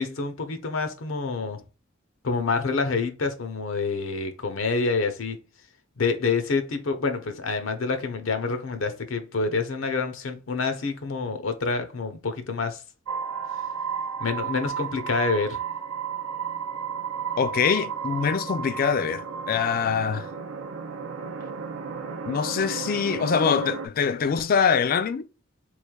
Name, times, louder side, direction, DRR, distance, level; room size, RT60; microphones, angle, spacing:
voice 1, 0.0-1.6 2.2-5.4 6.0-12.8 14.2-15.6, left 4 dB, 70° left, 0.7 m, -27 dB
sound 1, 13.1-23.9, right 6 dB, 75° right, 0.5 m, -33 dB
voice 2, 17.4-20.3 22.3-25.2, left 6 dB, 45° left, 0.3 m, -24 dB
3.5 x 3.1 x 2.2 m
head